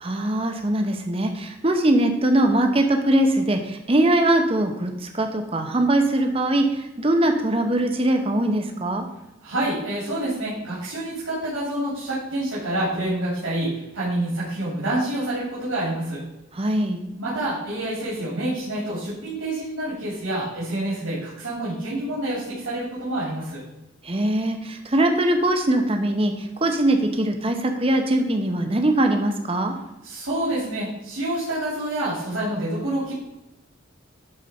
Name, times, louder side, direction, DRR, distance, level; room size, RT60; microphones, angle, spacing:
voice 1, 0.0-9.1 16.5-17.0 24.0-29.7, right 1 dB, 30° right, 5 dB, 0.8 m, -21 dB
voice 2, 9.4-16.2 17.2-23.6 30.0-33.1, right 1 dB, 80° right, -8 dB, 3.1 m, -27 dB
11.5 x 4.4 x 4.4 m, 0.93 s
head